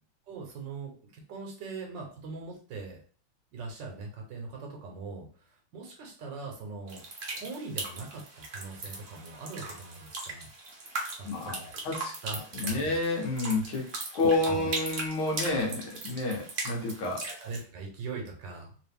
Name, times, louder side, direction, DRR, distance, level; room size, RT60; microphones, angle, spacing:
voice 1, 0.3-3.0 3.5-7.0 7.3-10.5 11.2-11.8 12.2-12.9 14.5-14.7 17.3-18.7, right 4 dB, 65° right, 1 dB, 1.4 m, -41 dB
sound 1, 6.9-17.6, right 3 dB, 45° right, 1.1 m, -39 dB
voice 2, 11.2-12.1 12.5-17.3, left 2 dB, 70° left, -1 dB, 1.8 m, -30 dB
3.8 x 2.9 x 3.4 m, 0.43 s
omnidirectional pair, 2.3 m